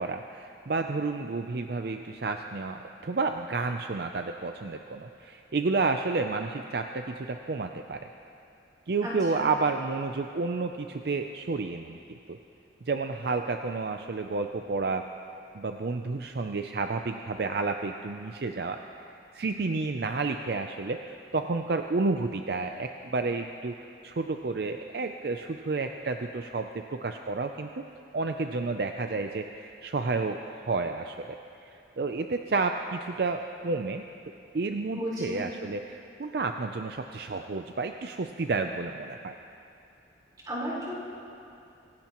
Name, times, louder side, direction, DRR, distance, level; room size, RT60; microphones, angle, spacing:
voice 1, 0.0-8.1 8.9-12.4 12.8-15.1 15.5-18.8 19.3-27.8 28.1-34.1 34.5-39.3, right 3 dB, 55° right, 6 dB, 0.5 m, -31 dB
voice 2, 9.0-9.4 34.9-35.5 40.5-40.9, equal, 20° right, -7 dB, 4.3 m, -34 dB
24.5 x 16.5 x 3.0 m, 2.6 s
head